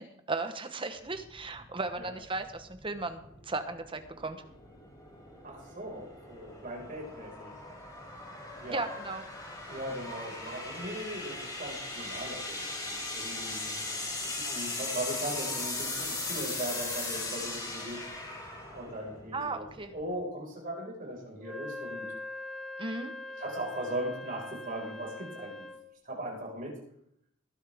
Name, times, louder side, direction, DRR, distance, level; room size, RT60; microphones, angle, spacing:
voice 1, 0.0-4.4 8.7-9.2 19.3-19.9 22.8-23.1, right 3 dB, 25° right, 8 dB, 1.0 m, -36 dB
sound 1, 1.0-20.1, left 2 dB, 20° left, 4.8 m, -39 dB
voice 2, 5.4-7.5 8.6-8.8 9.7-18.0 18.7-19.7 19.9-22.1 23.4-25.7 26.0-26.8, right 1 dB, 40° right, -1 dB, 5.2 m, -39 dB
Wind instrument woodwind instrument, 21.4-25.9, left 2 dB, ahead, 1.1 m, -42 dB
20.0 x 10.5 x 3.6 m, 0.74 s
head